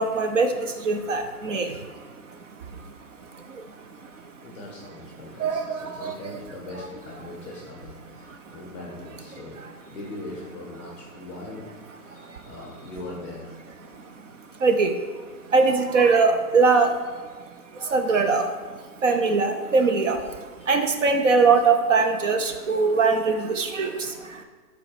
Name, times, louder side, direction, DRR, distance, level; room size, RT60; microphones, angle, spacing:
voice 1, 0.0-4.4 5.4-6.4 8.3-8.6 9.6-9.7 12.1-12.4 13.9-24.4, right 4 dB, 55° right, 6 dB, 0.6 m, -23 dB
voice 2, 4.1-9.6 9.8-11.8 12.0-13.5 20.6-21.0, left 2 dB, 10° left, -3 dB, 0.6 m, -41 dB
5.5 x 4.2 x 5.7 m, 1.5 s
hypercardioid pair, 170°, 45 cm